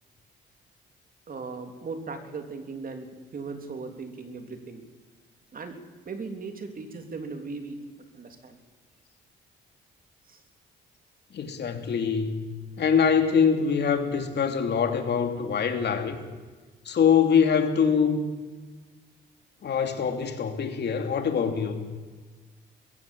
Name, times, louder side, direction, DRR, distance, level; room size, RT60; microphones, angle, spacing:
voice 1, 1.3-4.8 5.5-5.8 6.0-7.8 8.1-8.6 10.3-10.4, right 4 dB, 45° right, 6 dB, 3.4 m, -38 dB
voice 2, 11.3-12.4 12.8-16.2 16.8-18.3 19.6-21.8, left 6 dB, 60° left, 6 dB, 2.9 m, -24 dB
22.0 x 15.5 x 8.6 m, 1.4 s
cardioid pair, 90°, 20 cm